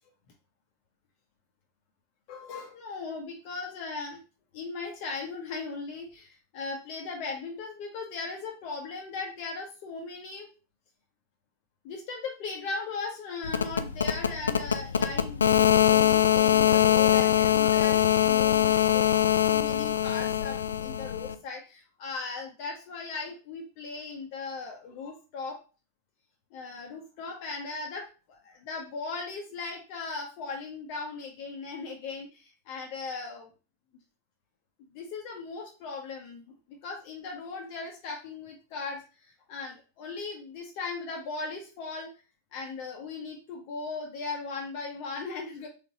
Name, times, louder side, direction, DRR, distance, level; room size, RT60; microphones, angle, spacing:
voice 1, 2.3-4.2 4.5-10.5 11.8-19.1 19.4-25.6 26.5-33.5 34.9-42.1 42.5-45.7, left 4 dB, 45° left, 1 dB, 0.8 m, -38 dB
sound 1, 13.4-21.3, left 10 dB, 70° left, 0.3 m, -23 dB
3.9 x 3.6 x 2.8 m, 0.34 s
figure-of-eight pair, 90°, 0 cm